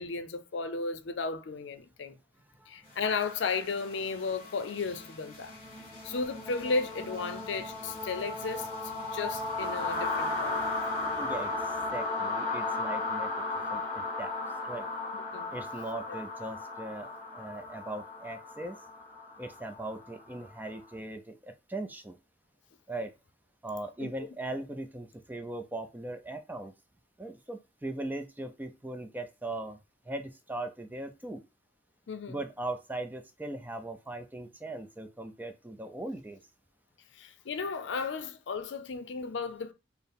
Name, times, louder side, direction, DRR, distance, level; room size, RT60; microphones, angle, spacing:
voice 1, 0.0-2.2 2.7-5.6 6.0-10.6 15.1-15.5 16.1-16.2 24.0-24.1 32.1-32.4 37.1-39.7, left 4 dB, 80° left, 0.5 m, -34 dB
voice 2, 2.5-3.0 10.9-13.3 13.7-14.3 14.6-14.9 15.5-17.1 17.3-18.8 19.4-22.2 22.9-23.1 23.6-26.7 27.2-29.8 30.1-31.4 32.3-36.4, right 2 dB, 10° right, 0.4 m, -39 dB
sound 1, 3.0-20.8, left 2 dB, 35° left, 1.5 m, -36 dB
4.4 x 2.0 x 3.5 m
head